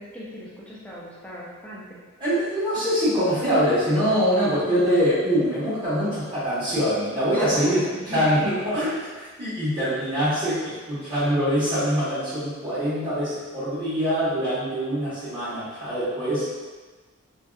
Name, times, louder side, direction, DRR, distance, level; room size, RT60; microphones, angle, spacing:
voice 1, 0.0-2.0 7.3-8.6, equal, 5° left, -7 dB, 0.4 m, -38 dB
voice 2, 2.2-16.5, equal, 25° right, -13 dB, 1.1 m, -24 dB
2.7 x 2.3 x 2.2 m, 1.4 s
head